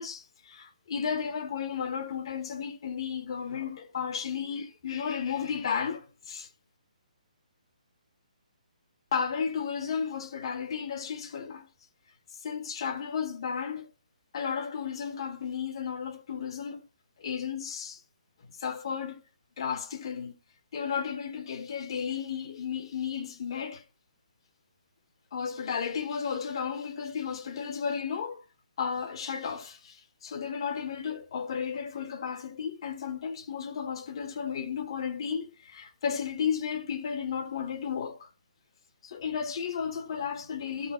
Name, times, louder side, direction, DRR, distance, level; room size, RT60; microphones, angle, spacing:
voice 1, 0.0-6.5 9.1-11.7 12.4-13.9 14.3-16.8 17.2-18.0 18.6-19.2 19.6-20.3 20.7-23.8 25.3-28.4 28.8-38.3 39.0-40.9, left 7 dB, 40° left, 1.1 m, -33 dB
13.0 x 5.3 x 4.4 m
hypercardioid pair, 170°, 4 cm